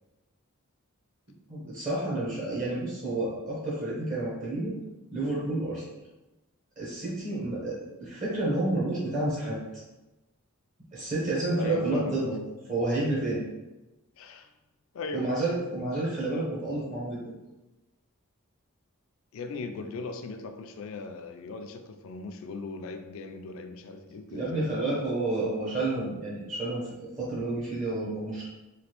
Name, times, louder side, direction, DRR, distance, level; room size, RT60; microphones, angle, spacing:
voice 1, 1.5-4.7 5.1-5.8 6.8-9.6 10.9-12.3 12.7-13.4 15.1-17.2 24.3-26.9 27.2-28.4, right 2 dB, 35° right, -7 dB, 0.7 m, -30 dB
voice 2, 11.6-12.2 14.2-14.5 14.9-15.3 19.3-24.8, left 3 dB, 65° left, 7 dB, 0.3 m, -38 dB
3.1 x 2.4 x 2.9 m, 1.0 s
head